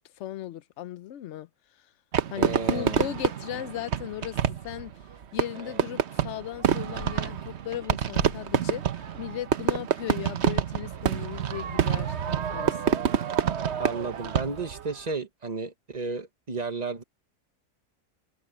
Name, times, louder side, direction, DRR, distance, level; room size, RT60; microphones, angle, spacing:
voice 1, 0.0-1.5 2.3-4.9 5.3-8.8 9.2-13.0, left 12 dB, 65° left, 0.7 m, -37 dB
Fireworks, 2.1-14.8, right 8 dB, 50° right, 1.0 m, -27 dB
voice 2, 2.4-3.1 5.5-5.8 13.8-17.0, right 4 dB, 30° right, 1.2 m, -33 dB
sound 1, 7.0-7.3 8.1-8.6, left 5 dB, 85° left, 2.0 m, -41 dB
open air
omnidirectional pair, 1.7 m